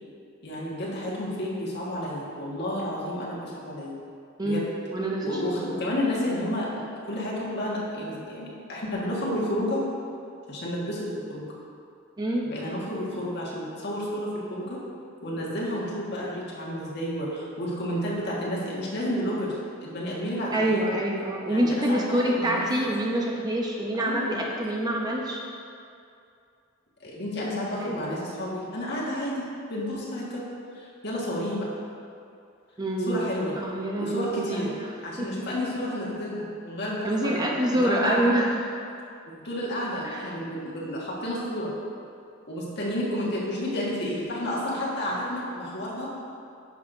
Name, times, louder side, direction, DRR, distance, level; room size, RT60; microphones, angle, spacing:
voice 1, 0.4-4.0 4.4-4.6 5.2-9.8 10.5-11.5 12.4-14.8 15.2-20.9 21.5-22.7 23.9-24.4 27.0-30.5 30.7-31.7 33.1-33.5 34.0-34.8 35.0-38.4 39.3-41.7 42.5-46.1, left 1 dB, 60° left, -6 dB, 1.7 m, -31 dB
voice 2, 4.9-5.7 12.2-12.5 20.5-25.4 27.8-28.1 32.8-34.8 35.2-35.3 37.0-38.5 40.0-40.3, right 1 dB, 20° right, -1 dB, 0.7 m, -26 dB
10.0 x 6.3 x 2.7 m, 2.5 s
head